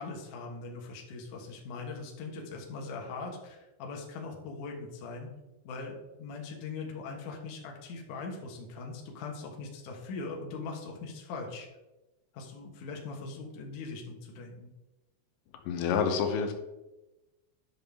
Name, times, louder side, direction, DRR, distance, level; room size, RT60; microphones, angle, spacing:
voice 1, 0.0-5.3 5.6-11.7 12.3-14.7, left 4 dB, 60° left, 0 dB, 2.3 m, -41 dB
voice 2, 15.7-16.5, left 6 dB, 90° left, 5 dB, 3.2 m, -28 dB
11.0 x 6.0 x 3.5 m, 1.0 s
omnidirectional pair, 5.0 m